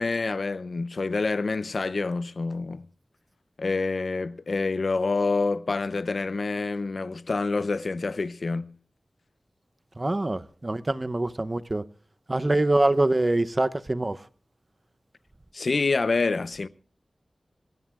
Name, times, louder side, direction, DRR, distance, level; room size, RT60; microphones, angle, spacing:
voice 1, 0.0-2.9 3.6-8.7 15.5-16.7, left 3 dB, 65° left, 0.6 m, -27 dB
voice 2, 10.0-11.9 12.3-14.2, right 2 dB, 35° right, 0.7 m, -24 dB
28.0 x 12.5 x 2.4 m
wide cardioid pair, 60°, 0 cm